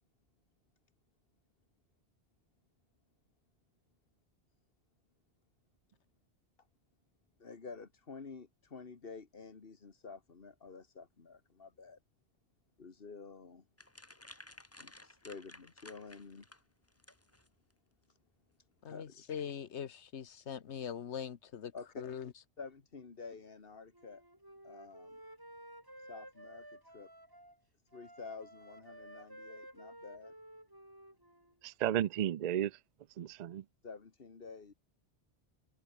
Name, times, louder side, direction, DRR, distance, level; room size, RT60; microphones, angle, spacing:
voice 1, 7.4-12.0 12.8-13.7 14.8-16.5 18.1-18.2 18.8-19.2 21.7-22.0 22.6-24.2 24.6-25.2 26.0-27.1 27.9-30.3 33.8-34.7, left 4 dB, 55° left, 1.9 m, -50 dB
sound 1, 13.8-17.7, left 1 dB, 15° left, 1.4 m, -55 dB
voice 2, 18.8-21.7 22.0-22.3, left 8 dB, 85° left, 1.3 m, -42 dB
Wind instrument woodwind instrument, 23.9-27.6 27.9-31.5, right 1 dB, 20° right, 4.4 m, -54 dB
voice 3, 31.6-32.7 33.2-33.6, right 11 dB, 55° right, 0.5 m, -33 dB
omnidirectional pair, 1.1 m